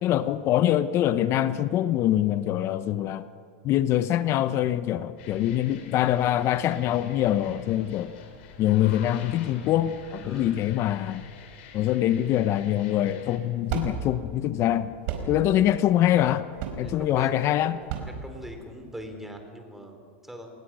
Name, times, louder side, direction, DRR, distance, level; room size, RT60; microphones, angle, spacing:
voice 1, 0.0-3.2 3.6-8.1 8.6-11.3 11.7-14.9 15.3-16.4 16.8-17.8, left 12 dB, 40° left, 13 dB, 0.9 m, -24 dB
sound 1, 5.2-13.4, left 7 dB, 65° left, 5.0 m, -47 dB
voice 2, 7.8-8.2 10.2-10.5 16.8-20.5, equal, 5° right, 5 dB, 4.0 m, -42 dB
sound 2, 12.9-19.1, right 7 dB, 60° right, 4.6 m, -35 dB
29.0 x 20.5 x 6.3 m, 2.2 s
supercardioid pair, 120°, 7 cm